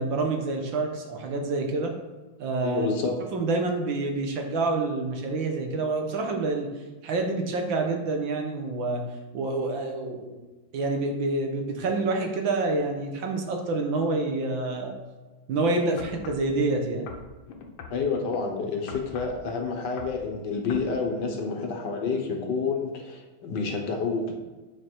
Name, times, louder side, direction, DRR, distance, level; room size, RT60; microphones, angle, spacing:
voice 1, 0.0-1.9 2.4-2.9 3.3-6.7 7.0-9.0 9.3-10.4 10.7-14.9 15.5-17.1, right 3 dB, 70° right, 3 dB, 1.9 m, -27 dB
voice 2, 2.6-3.2 17.9-24.3, left 4 dB, 60° left, 3 dB, 1.6 m, -29 dB
sound 1, 16.0-16.5 17.1-18.4 18.9-19.4 19.8-20.2 20.7-20.9 21.5-21.6, left 5 dB, 80° left, 1.8 m, -42 dB
9.4 x 5.4 x 4.6 m, 1.2 s
omnidirectional pair, 2.2 m